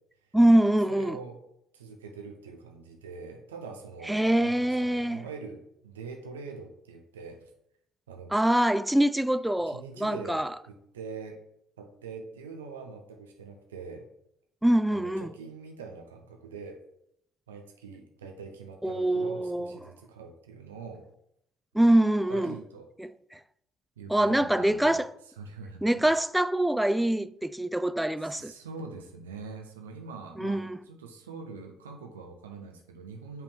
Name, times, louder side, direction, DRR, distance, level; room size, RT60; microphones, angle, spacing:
voice 1, 0.3-1.2 4.1-5.2 8.3-10.5 14.6-15.3 18.8-19.7 21.7-22.5 23.0-23.1 24.1-25.1 25.8-28.5 30.4-30.8, right 1 dB, 5° right, 0.3 m, -24 dB
voice 2, 0.9-1.4 1.7-7.5 8.1-8.3 9.7-11.4 11.8-14.1 14.9-16.8 17.5-21.0 22.3-22.9 24.0-25.8 28.2-33.4, right 4 dB, 90° right, 0.6 m, -43 dB
7.6 x 3.4 x 4.5 m
hypercardioid pair, 55°, 0 cm